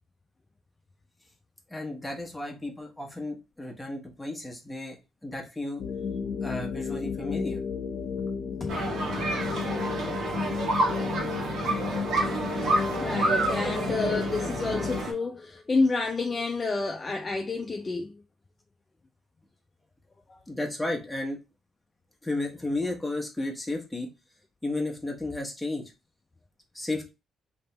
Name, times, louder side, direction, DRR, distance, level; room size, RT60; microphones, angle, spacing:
voice 1, 1.7-5.8 6.4-7.6 20.5-21.4 22.2-24.1 24.6-25.9 26.7-27.1, left 2 dB, 5° left, 1.1 m, -33 dB
sound 1, 5.8-15.0, left 6 dB, 70° left, 0.8 m, -33 dB
sound 2, 8.7-15.1, right 2 dB, 70° right, 1.4 m, -29 dB
voice 2, 13.0-18.2 20.3-20.4, left 3 dB, 30° left, 0.4 m, -29 dB
3.4 x 2.9 x 3.3 m
cardioid pair, 90°, 0 cm